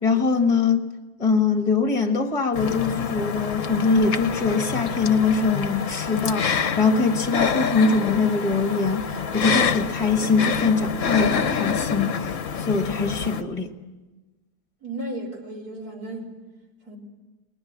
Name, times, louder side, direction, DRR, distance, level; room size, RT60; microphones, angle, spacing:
voice 1, 0.0-0.8 1.2-13.7, left 4 dB, 25° left, 5 dB, 1.6 m, -22 dB
sound 1, 2.6-13.4, left 7 dB, 55° left, 1.3 m, -27 dB
voice 2, 14.8-16.3 16.9-17.0, right 1 dB, 65° right, 0 dB, 4.3 m, -34 dB
29.5 x 21.5 x 7.4 m, 1.2 s
omnidirectional pair, 1.7 m